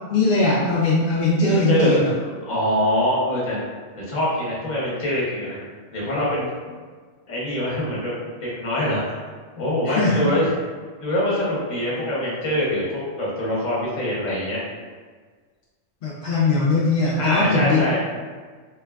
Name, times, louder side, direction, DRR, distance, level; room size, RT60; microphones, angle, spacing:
voice 1, 0.1-2.1 9.8-10.3 16.0-17.8, left 3 dB, 65° left, -7 dB, 0.5 m, -20 dB
voice 2, 1.7-3.6 4.1-5.6 5.9-6.5 7.3-9.2 9.6-10.5 11.0-14.6 17.2-18.0, left 1 dB, 40° left, -6 dB, 0.8 m, -24 dB
3.1 x 2.2 x 2.3 m, 1.5 s
omnidirectional pair, 1.4 m